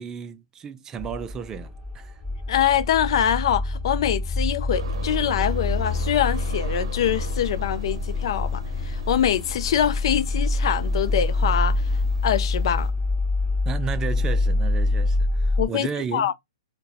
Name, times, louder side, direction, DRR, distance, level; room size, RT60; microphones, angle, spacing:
voice 1, 0.0-2.1 13.7-16.3, right 7 dB, 20° right, 0.3 m, -33 dB
sound 1, 1.0-15.7, left 2 dB, 20° left, 1.0 m, -26 dB
voice 2, 2.5-11.8 12.2-12.9 15.6-16.3, left 10 dB, 60° left, 0.4 m, -24 dB
sound 2, 4.7-12.9, right 4 dB, 70° right, 0.6 m, -37 dB
3.8 x 2.2 x 2.3 m
hypercardioid pair, 125°, 3 cm